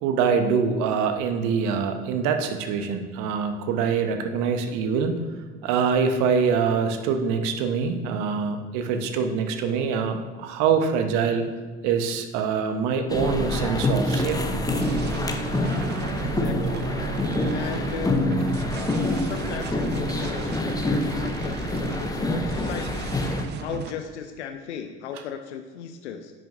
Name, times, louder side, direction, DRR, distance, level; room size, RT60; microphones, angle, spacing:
voice 1, 0.0-5.2 5.6-11.5 11.8-14.6 25.1-25.2, right 6 dB, 55° right, 7 dB, 0.9 m, -24 dB
sound 1, 13.1-23.5, left 1 dB, 10° left, 0.7 m, -26 dB
sound 2, 14.0-23.9, right 7 dB, 30° right, 0.6 m, -35 dB
voice 2, 16.4-16.8 17.5-18.8 19.2-23.0 23.6-26.3, left 8 dB, 75° left, 7 dB, 0.5 m, -36 dB
10.0 x 6.2 x 2.5 m, 1.5 s
figure-of-eight pair, 65°, 34 cm